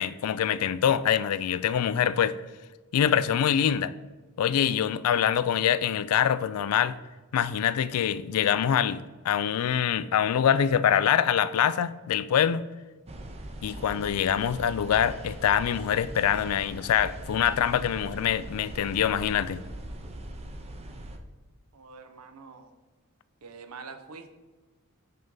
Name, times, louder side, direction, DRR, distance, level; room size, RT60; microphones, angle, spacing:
voice 1, 0.0-2.4 2.9-3.9 4.4-6.9 7.3-12.6 13.6-19.6, left 9 dB, 80° left, 0.3 m, -25 dB
sound 1, 13.1-21.2, right 1 dB, 30° right, 0.6 m, -41 dB
voice 2, 21.7-22.7 23.4-24.3, right 4 dB, 85° right, 0.7 m, -45 dB
5.5 x 5.4 x 3.7 m
head